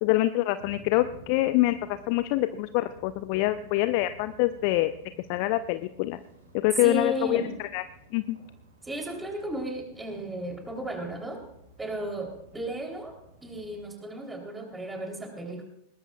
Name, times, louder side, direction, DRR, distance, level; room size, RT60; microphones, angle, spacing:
voice 1, 0.0-4.9 5.3-6.2 6.5-7.4 7.7-7.8 8.1-8.4, left 16 dB, 45° left, 13 dB, 0.5 m, -25 dB
sound 1, 0.6-13.9, right 2 dB, 70° right, 5.1 m, -53 dB
voice 2, 6.8-7.5 8.8-11.4 11.8-13.1 13.4-15.6, right 1 dB, 10° right, 2 dB, 3.4 m, -34 dB
21.0 x 19.0 x 2.4 m, 0.78 s
figure-of-eight pair, 90°, 0 cm